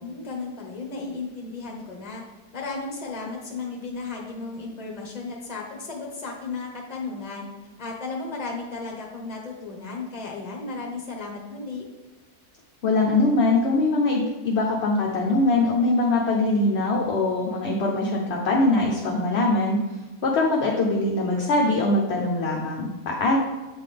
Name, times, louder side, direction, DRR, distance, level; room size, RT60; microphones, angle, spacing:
voice 1, 0.0-2.2 2.5-7.5 7.8-11.8, left 3 dB, 30° left, 0 dB, 1.0 m, -34 dB
voice 2, 12.8-19.8 20.2-23.4, left 2 dB, 55° left, -1 dB, 0.8 m, -22 dB
8.2 x 3.7 x 3.3 m, 1.2 s
omnidirectional pair, 1.7 m